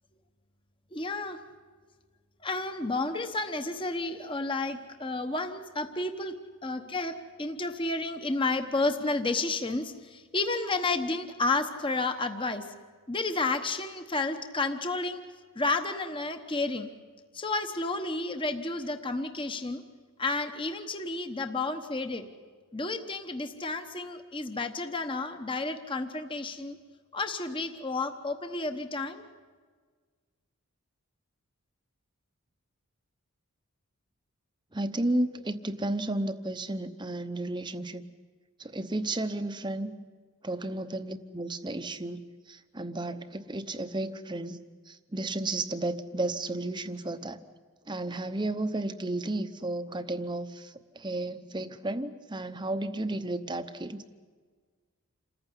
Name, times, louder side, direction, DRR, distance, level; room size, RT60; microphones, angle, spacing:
voice 1, 0.9-1.4 2.4-12.7 13.1-15.2 15.5-16.9 17.3-19.8 20.2-22.3 22.7-26.8 27.1-29.2, left 3 dB, 20° left, 7 dB, 1.0 m, -31 dB
voice 2, 34.7-38.0 38.6-39.9 40.4-42.2 42.5-44.6 44.9-47.4 47.9-54.0, right 2 dB, 20° right, 11 dB, 0.8 m, -33 dB
27.5 x 15.0 x 9.9 m, 1.6 s
head